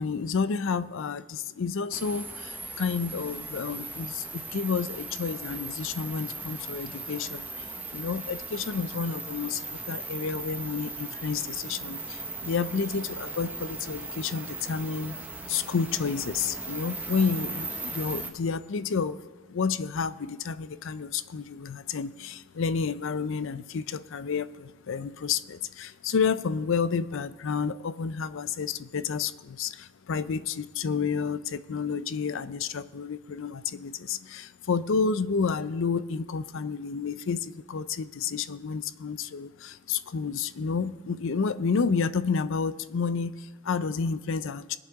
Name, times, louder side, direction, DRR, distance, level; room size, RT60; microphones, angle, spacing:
voice 1, 0.0-15.2 15.5-44.8, left 5 dB, 65° left, 14 dB, 0.5 m, -30 dB
sound 1, 1.9-18.3, right 3 dB, 10° right, 0.9 m, -38 dB
22.5 x 8.1 x 3.6 m, 1.3 s
head